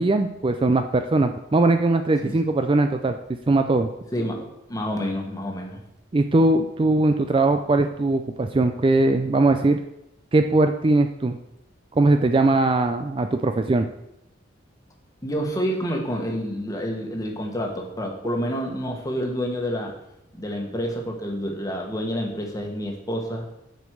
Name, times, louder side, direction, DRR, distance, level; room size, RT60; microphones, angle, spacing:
voice 1, 0.0-3.2 3.5-3.9 6.1-9.8 10.3-11.4 12.0-13.8, right 2 dB, 25° right, 7 dB, 0.4 m, -20 dB
voice 2, 4.1-5.8 15.2-20.0 20.4-23.4, equal, 20° left, 1 dB, 1.3 m, -28 dB
7.8 x 5.2 x 6.4 m, 0.85 s
head